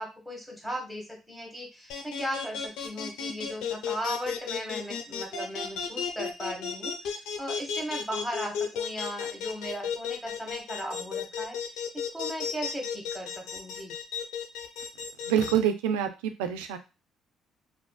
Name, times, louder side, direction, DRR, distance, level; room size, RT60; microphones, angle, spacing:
voice 1, 0.0-14.0, equal, 5° left, 0 dB, 1.2 m, -37 dB
sound 1, 1.9-15.5, left 7 dB, 75° left, 0.4 m, -33 dB
voice 2, 15.2-16.8, right 9 dB, 85° right, 8 dB, 0.3 m, -26 dB
2.5 x 2.4 x 2.2 m, 0.29 s
hypercardioid pair, 55°, 0 cm